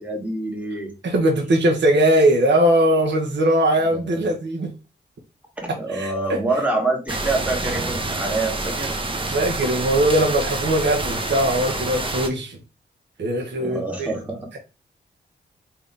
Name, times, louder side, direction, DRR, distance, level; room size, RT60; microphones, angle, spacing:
voice 1, 0.0-0.9 3.9-4.0 5.6-9.0 13.6-14.4, right 2 dB, 5° right, 1.7 m, -26 dB
voice 2, 1.0-4.7 5.7-6.4 9.2-12.6 13.2-14.1, right 1 dB, 65° right, 0.9 m, -20 dB
sound 1, 7.1-12.3, right 2 dB, 25° right, 0.8 m, -27 dB
3.4 x 2.8 x 3.8 m
cardioid pair, 50°, 20 cm